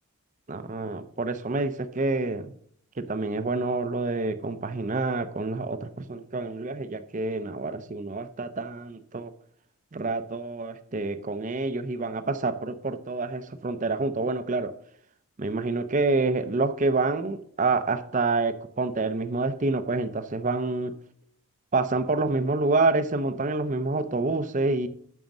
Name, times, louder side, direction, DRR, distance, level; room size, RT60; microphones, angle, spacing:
voice 1, 0.5-2.5 3.0-9.3 9.9-14.7 15.4-21.0 21.7-24.9, right 3 dB, 35° right, 11 dB, 0.6 m, -27 dB
9.1 x 6.3 x 6.0 m, 0.65 s
head